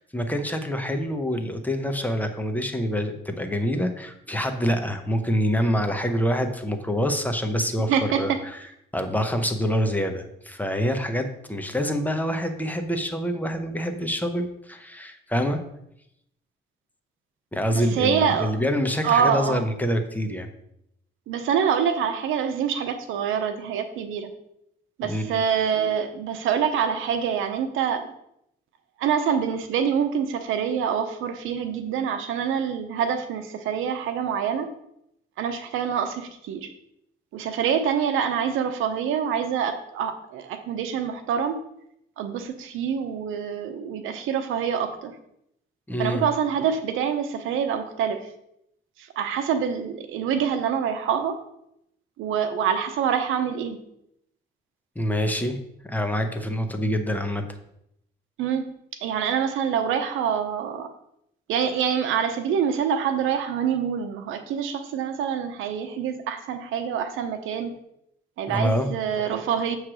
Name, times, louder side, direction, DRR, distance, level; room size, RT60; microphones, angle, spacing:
voice 1, 0.0-7.9 8.2-8.6 8.9-15.6 17.5-20.5 25.1-25.4 45.9-46.2 55.0-55.6 55.8-57.4 68.5-68.9, equal, 10° left, 6 dB, 0.9 m, -26 dB
voice 2, 7.9-8.4 17.7-18.5 19.0-19.6 21.3-24.3 25.0-28.1 29.0-34.7 35.4-36.7 37.3-41.6 42.2-45.2 46.0-48.3 49.0-51.4 52.2-53.8 58.4-58.7 59.0-60.9 61.5-67.7 68.4-69.8, right 7 dB, 90° right, 8 dB, 0.8 m, -26 dB
7.4 x 3.2 x 6.2 m, 0.77 s
cardioid pair, 90°, 20 cm